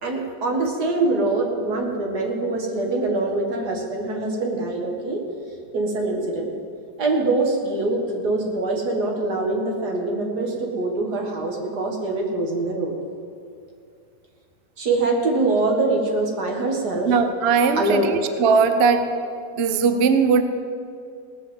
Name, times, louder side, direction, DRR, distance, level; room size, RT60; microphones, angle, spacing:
voice 1, 0.0-5.2 5.7-6.5 7.0-12.9 14.8-17.1 17.7-18.2, right 2 dB, 55° right, 1 dB, 2.2 m, -24 dB
voice 2, 17.1-19.0 19.6-20.4, right 5 dB, 75° right, 8 dB, 0.5 m, -19 dB
18.5 x 6.2 x 7.5 m, 2.3 s
omnidirectional pair, 2.2 m